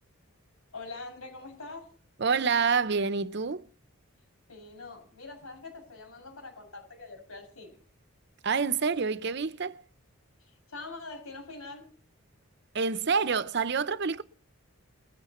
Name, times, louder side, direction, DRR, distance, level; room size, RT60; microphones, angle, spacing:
voice 1, 0.7-1.9 4.5-7.8 10.7-11.9, left 3 dB, 90° left, 6.6 m, -44 dB
voice 2, 2.2-3.6 8.4-9.8 12.7-14.2, right 5 dB, 50° right, 0.6 m, -27 dB
21.0 x 14.0 x 3.0 m
head